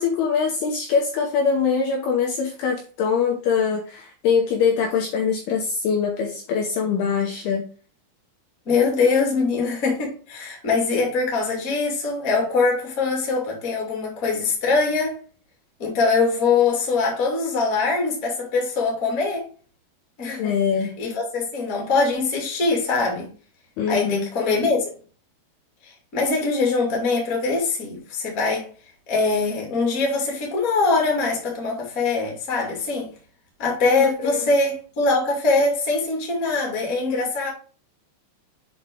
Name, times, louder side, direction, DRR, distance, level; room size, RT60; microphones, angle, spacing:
voice 1, 0.0-7.6 20.4-20.9 23.8-24.3 34.2-34.5, left 6 dB, 75° left, 2.5 m, -23 dB
voice 2, 8.6-15.2 15.8-19.4 20.2-20.5 20.8-23.3 23.9-24.9 26.1-28.7 29.1-33.1 33.6-37.5, left 4 dB, 30° left, 1.7 m, -22 dB
8.0 x 4.3 x 3.6 m
omnidirectional pair, 5.3 m